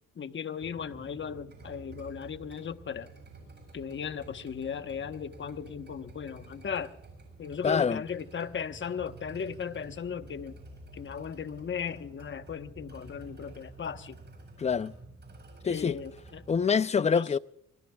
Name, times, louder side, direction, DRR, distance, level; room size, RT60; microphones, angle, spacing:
voice 1, 0.2-3.1 3.7-6.9 7.4-10.6 10.9-14.2 15.6-16.4 17.0-17.3, left 7 dB, 40° left, 1.1 m, -37 dB
sound 1, 0.6-16.7, right 2 dB, 35° right, 7.9 m, -50 dB
voice 2, 7.6-8.0 14.6-14.9 15.6-16.0 16.5-17.4, left 6 dB, 25° left, 0.5 m, -25 dB
25.5 x 20.5 x 2.3 m
cardioid pair, 90°, 30 cm